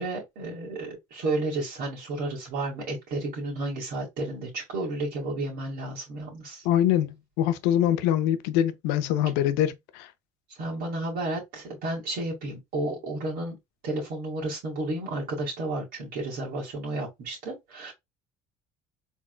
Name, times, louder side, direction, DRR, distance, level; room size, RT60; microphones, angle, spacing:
voice 1, 0.0-6.6 10.6-13.6 13.8-17.9, right 2 dB, 70° right, 2.0 m, -32 dB
voice 2, 6.6-10.1, left 11 dB, 80° left, 0.6 m, -24 dB
3.8 x 3.6 x 2.3 m
supercardioid pair, 75°, 17 cm